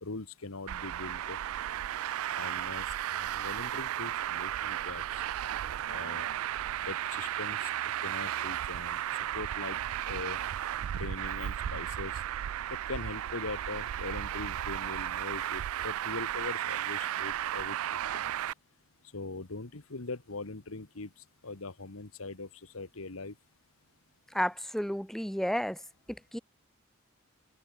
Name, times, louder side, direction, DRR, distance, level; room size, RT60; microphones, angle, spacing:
voice 1, 0.0-1.4 2.4-5.2 5.8-6.3 6.8-7.7 8.0-9.0 9.3-9.8 10.0-10.4 10.9-12.1 12.7-17.8 19.1-21.1 21.4-22.5 22.7-23.3, left 3 dB, 80° left, 1.5 m, -41 dB
Traffic noise roadway noise, 0.7-18.5, right 11 dB, 85° right, 0.3 m, -34 dB
voice 2, 24.3-25.8 26.1-26.4, equal, ahead, 0.7 m, -32 dB
head